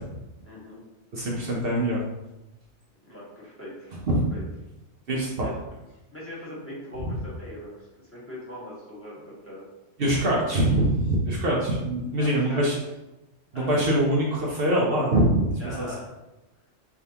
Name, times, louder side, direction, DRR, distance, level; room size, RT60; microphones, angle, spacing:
voice 1, 0.4-0.8 3.0-3.9 4.3-4.4 6.1-9.6 10.4-10.6 12.2-12.6 13.5-13.7 15.6-16.1, left 1 dB, 10° left, -7 dB, 1.5 m, -41 dB
voice 2, 1.1-2.0 4.1-4.2 5.1-5.5 10.0-12.8 13.5-15.5 15.8-15.9, right 1 dB, 55° right, -4 dB, 0.9 m, -23 dB
4.4 x 3.6 x 2.8 m, 1.0 s
omnidirectional pair, 1.2 m